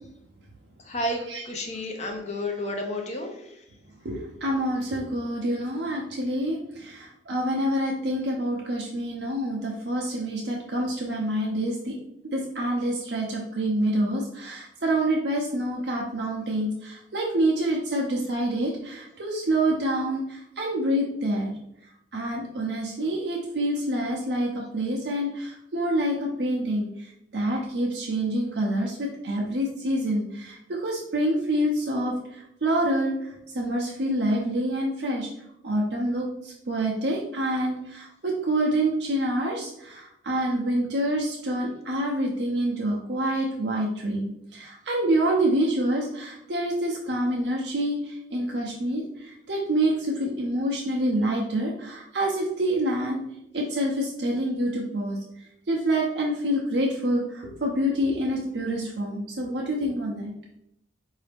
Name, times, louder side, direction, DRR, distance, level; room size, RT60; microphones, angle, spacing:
voice 1, 0.8-3.5, left 1 dB, 40° left, 2 dB, 0.6 m, -31 dB
voice 2, 4.0-12.0 12.3-21.5 22.1-26.9 27.3-35.3 35.6-53.2 53.5-55.2 55.7-60.3, right 1 dB, 65° right, -1 dB, 0.6 m, -27 dB
4.8 x 2.7 x 3.4 m, 0.80 s
head